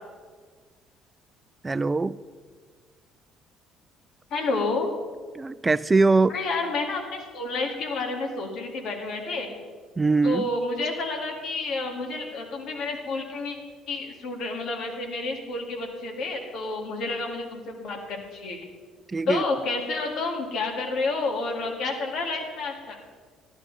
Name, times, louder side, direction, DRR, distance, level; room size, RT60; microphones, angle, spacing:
voice 1, 1.6-2.2 5.3-6.4 10.0-10.5 19.1-19.4, right 3 dB, 25° right, 17 dB, 0.3 m, -22 dB
voice 2, 4.3-4.9 6.3-9.5 10.2-13.6 13.9-18.6 19.3-23.0, left 3 dB, 65° left, 1 dB, 2.4 m, -30 dB
12.0 x 11.5 x 4.1 m, 1.5 s
supercardioid pair, 65°, 0 cm